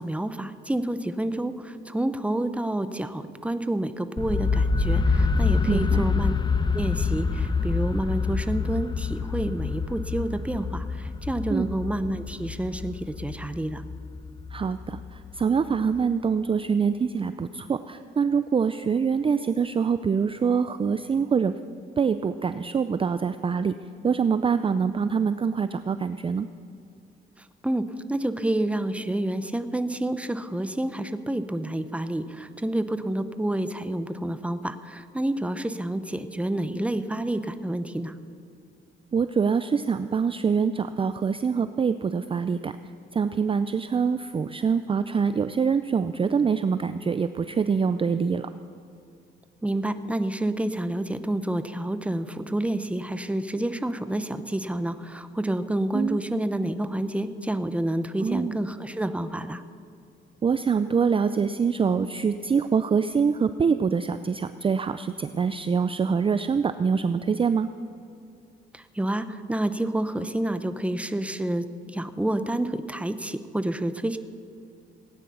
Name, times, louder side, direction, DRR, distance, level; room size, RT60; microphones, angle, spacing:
voice 1, 0.0-6.3 6.7-13.8 27.6-38.2 49.6-59.6 68.7-74.2, right 1 dB, 5° right, 11 dB, 0.8 m, -29 dB
sound 1, 4.2-16.0, left 4 dB, 20° left, 0.8 m, -27 dB
voice 2, 5.7-6.1 11.5-11.7 14.5-21.5 22.0-23.7 24.0-26.5 39.1-42.8 43.1-48.5 55.9-56.2 58.2-58.6 60.4-67.7, right 6 dB, 25° right, 11 dB, 0.5 m, -25 dB
17.0 x 9.8 x 7.0 m, 2.4 s
cardioid pair, 90°, 20 cm